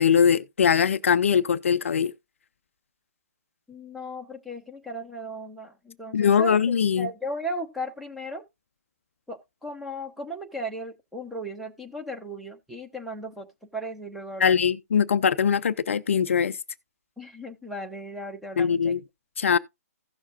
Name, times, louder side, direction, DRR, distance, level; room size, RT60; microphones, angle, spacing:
voice 1, 0.0-2.1 6.1-7.1 14.4-16.6 18.6-19.0 19.4-19.6, left 7 dB, 50° left, 0.4 m, -21 dB
voice 2, 3.7-8.4 9.3-14.5 17.2-19.0, equal, ahead, 0.8 m, -36 dB
16.0 x 6.4 x 2.4 m
figure-of-eight pair, 135°, 9 cm